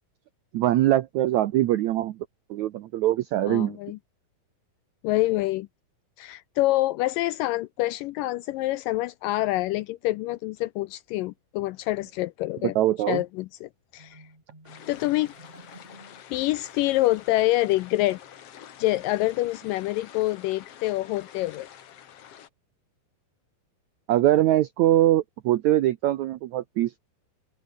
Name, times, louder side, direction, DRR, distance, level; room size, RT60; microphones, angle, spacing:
voice 1, 0.5-2.2 2.5-3.8 12.7-13.2 24.1-27.0, right 14 dB, 80° right, 1.6 m, -22 dB
voice 2, 3.5-4.0 5.0-5.7 6.2-12.8 13.1-14.2 14.9-15.3 16.3-18.2 18.8-21.7, left 17 dB, 80° left, 2.0 m, -26 dB
Marimba xylophone, 14.0-17.3, right 1 dB, 10° right, 4.7 m, -52 dB
sound 1, 14.6-22.5, left 10 dB, 55° left, 1.9 m, -47 dB
open air
omnidirectional pair, 4.3 m